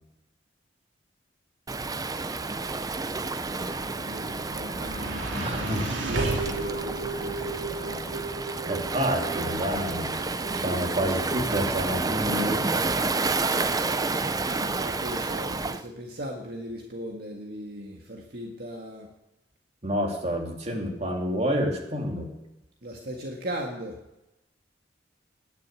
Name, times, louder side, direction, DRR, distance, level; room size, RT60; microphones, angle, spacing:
Waves surf, 1.7-15.8, right 3 dB, 20° right, 0.6 m, -30 dB
voice 1, 3.5-8.3 8.7-8.9 14.5-19.1 22.8-24.0, equal, 55° right, 0 dB, 1.9 m, -39 dB
sound 1, 3.8-15.9, right 2 dB, 90° right, 2.6 m, -36 dB
voice 2, 5.4-5.8 8.7-10.2 10.6-12.6 19.8-22.3, equal, 35° right, 1 dB, 3.0 m, -28 dB
19.5 x 6.8 x 9.0 m, 0.94 s
head